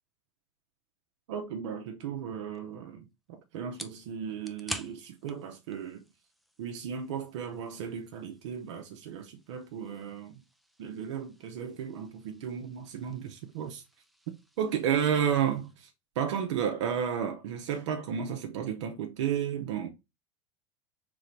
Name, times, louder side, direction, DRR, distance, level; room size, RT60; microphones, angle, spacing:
voice 1, 1.3-6.0 6.6-10.4 10.8-13.8 14.6-15.9 16.2-19.9, right 8 dB, 75° right, 0.8 m, -33 dB
sound 1, 2.5-15.8, equal, ahead, 0.5 m, -49 dB
3.8 x 3.4 x 3.3 m
hypercardioid pair, 90°, 15 cm